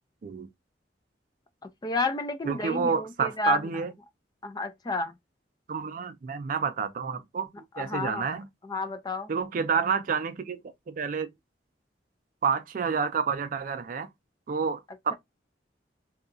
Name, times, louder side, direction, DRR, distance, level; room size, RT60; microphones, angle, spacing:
voice 1, 1.6-3.7 4.4-5.1 7.7-8.3 8.6-9.3, left 3 dB, 25° left, 0.4 m, -31 dB
voice 2, 2.5-3.9 5.7-8.5 9.3-10.6 10.9-11.3 12.4-14.1 14.5-15.1, right 5 dB, 50° right, 0.4 m, -29 dB
2.8 x 2.3 x 2.5 m
head